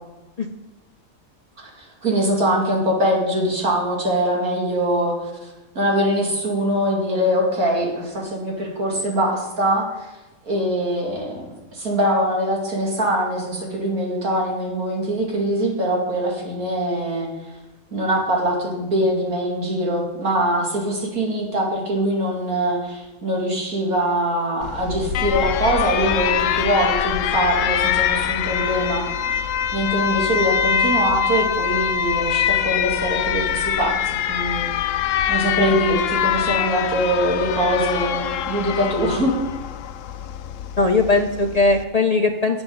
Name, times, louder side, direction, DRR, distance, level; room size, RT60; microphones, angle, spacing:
voice 1, 1.6-5.1 5.4-5.5 5.7-9.9 10.5-17.3 17.9-29.0 29.7-34.0 34.3-34.7 35.3-39.3, right 1 dB, 85° right, -2 dB, 3.0 m, -22 dB
Alarm, 24.6-41.8, left 9 dB, 70° left, 0.9 m, -24 dB
voice 2, 40.8-42.6, left 3 dB, 45° left, 4 dB, 0.5 m, -19 dB
17.0 x 7.0 x 3.9 m, 1.1 s
omnidirectional pair, 1.5 m